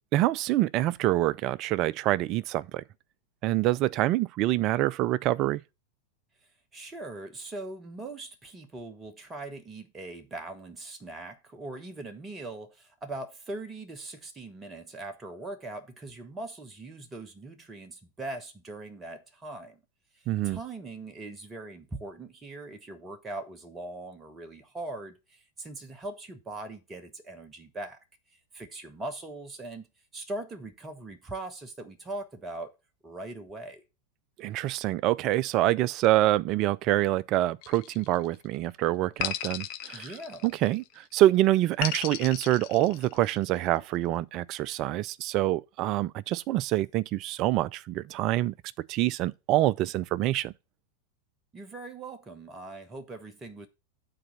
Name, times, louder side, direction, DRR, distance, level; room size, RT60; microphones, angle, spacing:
voice 1, 0.1-2.8 3.4-5.6 20.3-20.6 34.4-40.1 40.4-48.5 48.9-50.5, right 15 dB, 40° right, 0.3 m, -26 dB
voice 2, 6.7-19.8 20.1-28.0 28.5-29.9 30.1-32.8 33.0-33.8 39.9-40.5 51.5-53.7, right 2 dB, 20° right, 0.9 m, -41 dB
sound 1, 37.6-38.5 39.2-40.9 41.8-43.5, left 12 dB, 45° left, 0.7 m, -36 dB
8.9 x 4.1 x 5.6 m
figure-of-eight pair, 90°, 0 cm